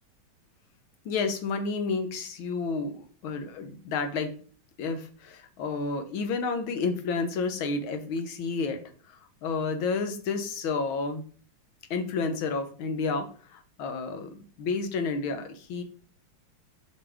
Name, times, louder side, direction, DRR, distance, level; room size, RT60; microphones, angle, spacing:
voice 1, 1.0-4.3 4.8-8.8 9.1-11.2 11.9-15.8, left 4 dB, 75° left, 7 dB, 1.7 m, -30 dB
6.9 x 5.3 x 3.5 m, 0.42 s
omnidirectional pair, 2.3 m